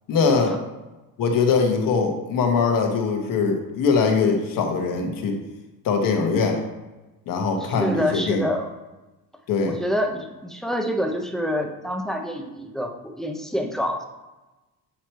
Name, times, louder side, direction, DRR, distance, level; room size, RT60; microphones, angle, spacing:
voice 1, 0.1-0.5 1.2-5.3 5.8-6.6 7.3-8.5 9.5-9.8, left 5 dB, 60° left, 2 dB, 1.2 m, -22 dB
voice 2, 7.6-8.7 9.7-14.1, equal, ahead, 3 dB, 0.4 m, -27 dB
8.3 x 3.0 x 4.5 m, 1.1 s
cardioid pair, 150°, 37 cm